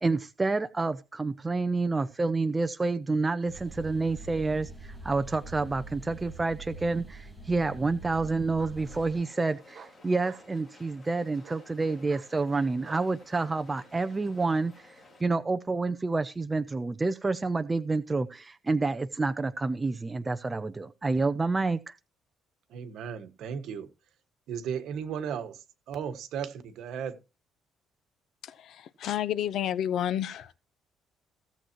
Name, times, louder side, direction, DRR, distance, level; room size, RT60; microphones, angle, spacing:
voice 1, 0.0-14.9 15.2-21.9, right 3 dB, 15° right, 0.5 m, -29 dB
sound 1, 3.5-9.1, right 2 dB, ahead, 1.8 m, -44 dB
Bark, 8.6-8.8 9.7-10.5 11.4-11.7 12.1-12.3 12.8-13.5, right 7 dB, 40° right, 1.1 m, -50 dB
sound 2, 8.7-15.2, left 2 dB, 20° left, 3.1 m, -55 dB
voice 2, 22.7-23.9 24.5-27.2, right 7 dB, 65° right, 1.4 m, -35 dB
voice 3, 28.4-30.6, left 10 dB, 60° left, 0.8 m, -31 dB
16.5 x 7.7 x 3.0 m
cardioid pair, 145°, 0 cm